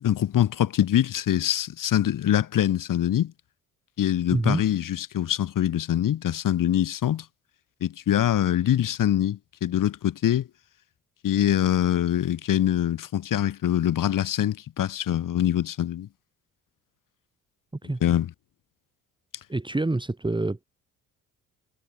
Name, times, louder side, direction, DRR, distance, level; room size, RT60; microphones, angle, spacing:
voice 1, 0.0-3.3 4.0-7.3 7.8-10.5 11.2-16.1 18.0-18.3, left 11 dB, 50° left, 1.8 m, -24 dB
voice 2, 4.3-4.6 17.8-18.0 19.5-20.6, right 2 dB, 10° right, 1.9 m, -26 dB
hypercardioid pair, 50°, 42 cm